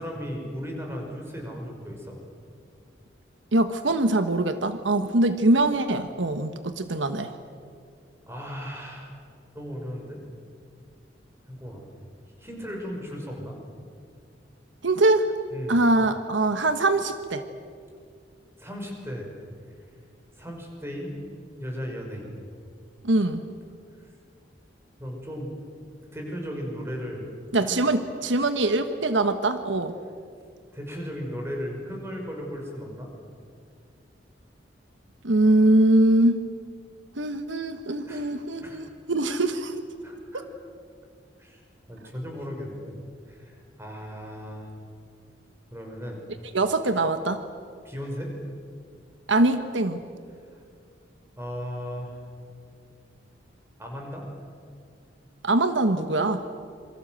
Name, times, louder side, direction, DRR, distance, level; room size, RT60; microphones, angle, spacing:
voice 1, 0.0-2.2 8.3-9.1 9.5-10.2 11.5-11.8 12.4-13.6 15.5-15.9 18.6-19.3 20.4-21.1 21.6-22.4 24.0-24.1 25.0-25.5 26.1-27.3 27.6-27.9 30.7-33.1 38.1-38.3 38.6-38.8 40.0-40.5 41.4-41.6 41.9-42.9 43.2-44.7 45.7-46.2 47.8-48.3 50.4-50.6 51.4-52.2 53.8-54.3, equal, 15° right, 1 dB, 5.8 m, -36 dB
voice 2, 3.5-7.3 14.8-15.3 15.7-17.4 23.0-23.4 27.5-29.9 35.2-36.4 37.2-39.5 40.3-40.4 46.5-47.4 49.3-50.0 55.4-56.4, right 2 dB, 85° right, 9 dB, 1.3 m, -22 dB
27.5 x 24.0 x 7.8 m, 2.2 s
head